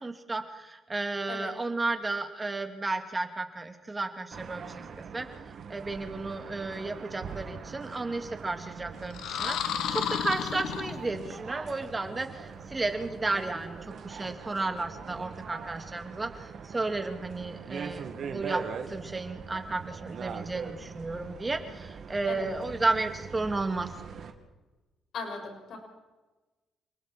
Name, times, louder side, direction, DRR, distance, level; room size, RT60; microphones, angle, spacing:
voice 1, 0.0-5.3 5.7-18.6 18.9-23.9, right 3 dB, 20° right, 6 dB, 2.7 m, -33 dB
sound 1, 4.3-24.3, right 6 dB, 60° right, 2.4 m, -42 dB
sound 2, 9.1-11.4, left 8 dB, 85° left, 1.6 m, -32 dB
voice 2, 25.1-25.8, left 4 dB, 65° left, 1 dB, 6.3 m, -38 dB
28.5 x 20.0 x 4.5 m, 1.2 s
cardioid pair, 90°, 0 cm